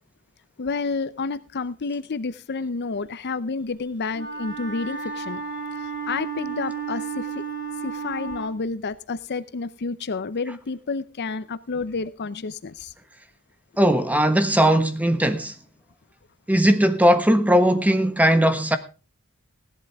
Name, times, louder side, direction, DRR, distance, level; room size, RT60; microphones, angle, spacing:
voice 1, 0.6-5.4 5.8-7.4 7.8-12.9, left 4 dB, 50° left, 0.6 m, -30 dB
Wind instrument woodwind instrument, 4.1-8.5, right 6 dB, 55° right, 6.1 m, -32 dB
voice 2, 13.8-15.5 16.5-18.8, equal, 5° right, 1.2 m, -19 dB
16.5 x 11.5 x 3.5 m
head